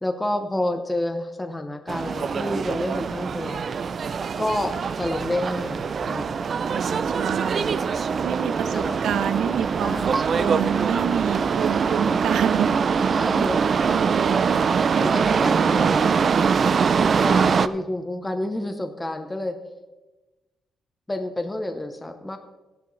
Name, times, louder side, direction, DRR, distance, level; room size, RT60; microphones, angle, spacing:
voice 1, 0.0-3.6 4.4-6.4 8.7-9.0 9.8-10.7 13.1-13.6 15.0-16.0 16.7-16.8 17.2-19.6 21.1-22.4, left 1 dB, 10° left, 6 dB, 0.7 m, -29 dB
sound 1, 1.9-17.7, right 6 dB, 40° right, 0.4 m, -23 dB
voice 2, 6.7-7.7 8.2-13.3 13.7-14.8, right 8 dB, 80° right, 11 dB, 0.8 m, -28 dB
15.5 x 10.5 x 3.2 m, 1.1 s
cardioid pair, 160°, 0 cm